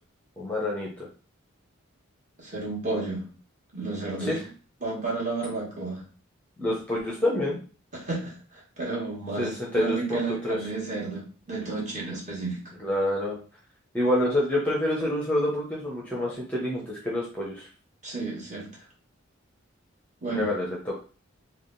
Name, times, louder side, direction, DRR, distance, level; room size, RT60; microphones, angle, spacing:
voice 1, 0.4-1.1 4.3-4.4 6.6-7.6 9.4-10.6 12.8-13.4 13.9-17.7 20.3-21.0, left 1 dB, 5° left, -3 dB, 0.6 m, -27 dB
voice 2, 2.4-3.3 3.7-4.5 4.8-6.0 7.9-12.6 18.0-18.7 20.2-20.5, right 3 dB, 35° right, -4 dB, 1.4 m, -32 dB
3.5 x 2.3 x 3.8 m, 0.38 s
head